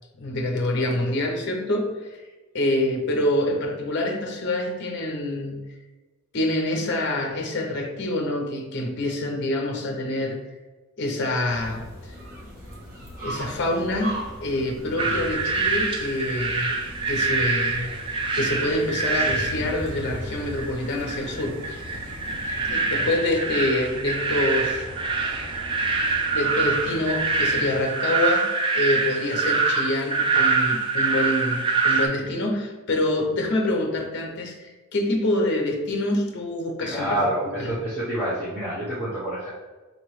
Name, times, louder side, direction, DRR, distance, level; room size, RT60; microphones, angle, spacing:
voice 1, 0.1-2.2 2.5-5.7 6.3-10.4 11.0-12.1 13.2-16.8 17.1-21.9 22.6-24.9 26.3-37.2 37.6-37.7, left 1 dB, 50° left, 2 dB, 0.6 m, -26 dB
sound 1, 11.5-22.7, equal, 40° right, 1.2 m, -38 dB
sound 2, 14.7-27.7, equal, 60° right, 0.9 m, -44 dB
sound 3, 15.0-32.1, right 4 dB, 25° right, 0.3 m, -25 dB
voice 2, 36.8-39.5, right 1 dB, 5° right, -12 dB, 0.8 m, -28 dB
3.9 x 2.9 x 3.1 m, 1.2 s
head